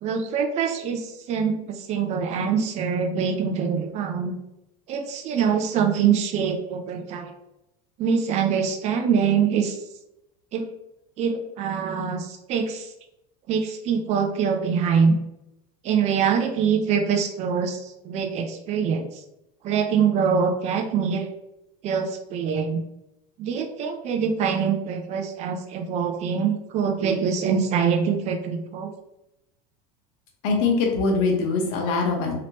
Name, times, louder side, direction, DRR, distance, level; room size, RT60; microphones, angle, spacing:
voice 1, 0.0-4.3 4.9-7.3 8.0-9.8 10.5-10.7 11.2-12.9 13.5-15.2 15.8-19.1 19.6-21.3 21.8-22.8 23.4-28.9, right 6 dB, 35° right, 6 dB, 0.5 m, -24 dB
voice 2, 30.4-32.3, left 4 dB, 65° left, 1 dB, 1.0 m, -22 dB
3.2 x 2.9 x 2.9 m, 0.89 s
supercardioid pair, 145°, 18 cm